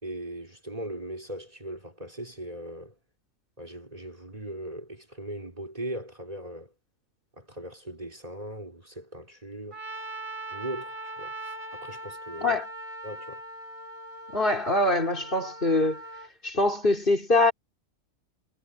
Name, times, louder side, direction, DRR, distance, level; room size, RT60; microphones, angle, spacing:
voice 1, 0.0-2.9 3.6-6.7 7.4-9.8 10.5-11.3 11.7-12.6 13.0-13.4, right 1 dB, 25° right, 5.0 m, -39 dB
Trumpet, 9.7-16.3, right 2 dB, 70° right, 4.9 m, -40 dB
voice 2, 14.3-16.0 16.4-17.5, left 2 dB, 40° left, 4.5 m, -23 dB
omnidirectional pair, 1.4 m